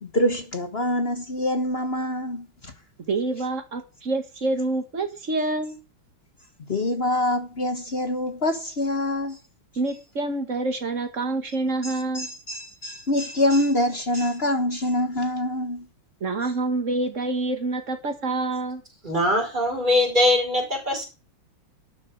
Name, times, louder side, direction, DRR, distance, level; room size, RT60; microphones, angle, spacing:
voice 1, 0.0-2.7 6.7-9.4 11.8-15.9, left 1 dB, 35° left, 1.2 m, -25 dB
voice 2, 3.1-5.8 9.8-12.3 16.2-18.8, right 2 dB, 40° right, 2.1 m, -27 dB
voice 3, 19.0-21.0, left 1 dB, 20° right, 5.5 m, -21 dB
12.5 x 9.5 x 5.1 m
omnidirectional pair, 2.2 m